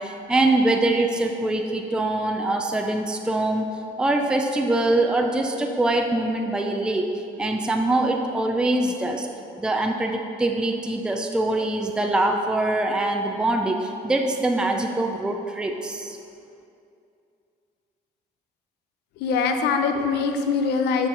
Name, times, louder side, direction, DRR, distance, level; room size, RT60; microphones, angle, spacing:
voice 1, 0.0-3.7 4.0-7.1 7.4-9.3 9.6-16.2, right 2 dB, 5° right, 3 dB, 0.5 m, -23 dB
voice 2, 19.2-21.1, left 5 dB, 80° left, 5 dB, 0.7 m, -23 dB
7.6 x 4.5 x 5.5 m, 2.6 s
cardioid pair, 110°, 17 cm